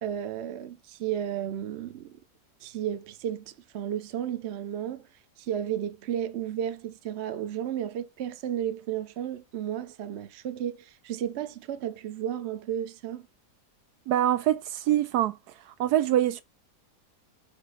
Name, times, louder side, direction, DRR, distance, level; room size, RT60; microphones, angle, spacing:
voice 1, 0.0-2.2 2.6-5.1 5.4-13.3, right 10 dB, 55° right, 0.8 m, -33 dB
voice 2, 14.1-15.4 15.8-16.4, right 12 dB, 75° right, 1.1 m, -24 dB
8.0 x 2.9 x 4.9 m
omnidirectional pair, 1.8 m